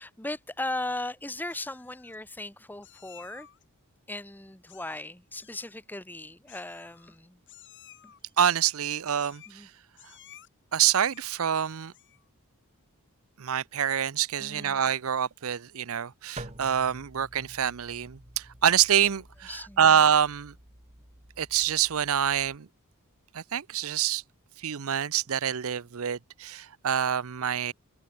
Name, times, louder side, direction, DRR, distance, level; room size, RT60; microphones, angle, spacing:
voice 1, 0.0-3.5 4.1-7.4 8.0-8.1 9.5-9.7 14.4-14.8 19.5-20.0, left 2 dB, 10° left, 1.3 m, -37 dB
Meow, 1.5-2.2 2.8-3.6 4.7-5.1 5.3-5.8 6.5-7.2 7.5-8.2 9.1-9.6 9.9-10.5 10.8-11.4 11.9-12.3, left 11 dB, 55° left, 8.0 m, -54 dB
voice 2, 8.4-9.7 10.7-11.9 13.4-20.5 21.4-22.7 23.3-24.2 24.6-27.7, right 9 dB, 65° right, 0.6 m, -26 dB
sound 1, 16.4-22.6, right 1 dB, 30° right, 3.7 m, -49 dB
open air
head